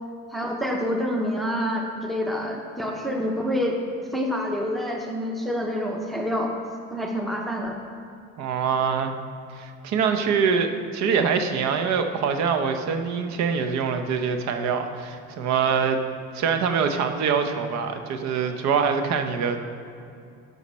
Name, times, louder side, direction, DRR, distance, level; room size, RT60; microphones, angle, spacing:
voice 1, 0.3-3.8 4.1-6.5 6.9-7.7, equal, ahead, 1 dB, 0.6 m, -27 dB
voice 2, 8.4-9.1 9.6-16.0 16.3-19.6, right 6 dB, 65° right, 7 dB, 0.8 m, -24 dB
12.0 x 5.5 x 4.2 m, 2.6 s
cardioid pair, 165°, 29 cm